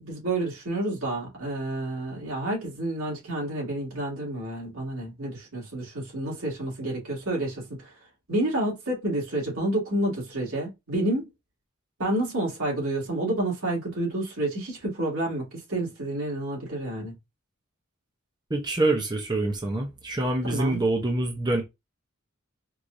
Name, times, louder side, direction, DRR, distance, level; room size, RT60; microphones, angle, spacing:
voice 1, 0.0-7.9 8.3-11.3 12.0-17.1 20.5-20.8, right 1 dB, 85° right, 2.4 m, -29 dB
voice 2, 18.5-21.6, right 2 dB, 20° right, 0.7 m, -26 dB
4.6 x 2.6 x 2.6 m
head